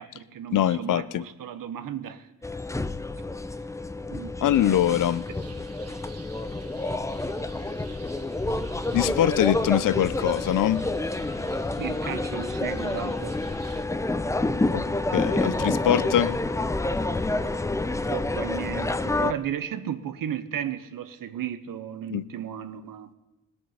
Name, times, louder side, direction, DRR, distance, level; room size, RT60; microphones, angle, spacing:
voice 1, 0.0-2.3 4.1-5.2 11.8-13.4 18.1-23.1, right 9 dB, 75° right, 1.1 m, -35 dB
voice 2, 0.5-1.2 4.4-5.2 8.9-10.9 14.7-14.8 15.1-16.4 22.1-22.2, left 11 dB, 65° left, 0.6 m, -23 dB
sound 1, 2.4-19.3, left 2 dB, 10° left, 0.5 m, -28 dB
sound 2, 4.5-13.8, right 5 dB, 45° right, 1.1 m, -49 dB
20.0 x 8.6 x 5.7 m
cardioid pair, 100°, 33 cm